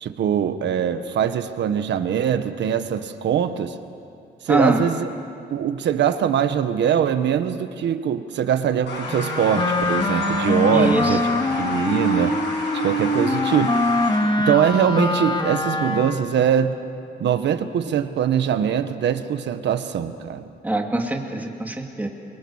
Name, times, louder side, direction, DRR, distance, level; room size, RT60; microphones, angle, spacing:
voice 1, 0.0-3.7 4.4-5.1 5.5-12.3 12.7-13.8 14.4-16.8 17.2-20.5, right 8 dB, 80° right, 9 dB, 1.4 m, -22 dB
voice 2, 4.5-4.8 10.7-11.2 20.6-22.1, right 1 dB, 10° right, 2 dB, 2.7 m, -23 dB
sound 1, 8.9-14.2, left 2 dB, 80° left, 7.8 m, -31 dB
Wind instrument woodwind instrument, 9.1-16.3, left 1 dB, 25° left, 2.1 m, -23 dB
29.0 x 24.0 x 7.3 m, 2.5 s
cardioid pair, 125°, 18 cm